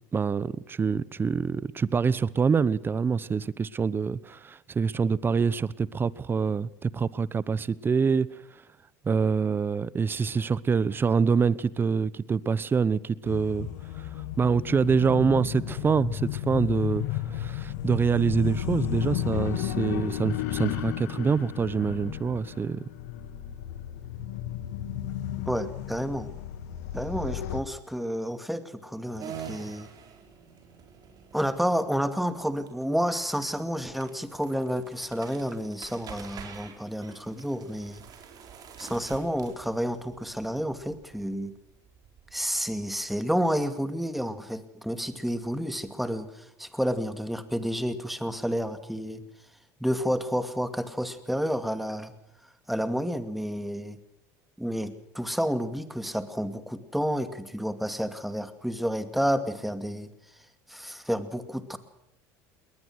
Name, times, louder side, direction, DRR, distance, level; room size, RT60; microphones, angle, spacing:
voice 1, 0.1-8.3 9.0-13.7 14.0-14.1 14.4-22.8, right 5 dB, 25° right, 0.9 m, -25 dB
sound 1, 13.3-27.6, left 11 dB, 80° left, 1.9 m, -33 dB
voice 2, 25.5-26.3 26.9-29.9 31.3-38.0 38.8-41.5 42.3-49.2 49.8-52.1 52.7-54.0 54.6-60.1 60.7-61.8, equal, ahead, 2.3 m, -30 dB
sound 2, 29.2-43.4, right 8 dB, 50° right, 4.6 m, -47 dB
21.5 x 19.5 x 6.3 m
supercardioid pair, 95°, 9 cm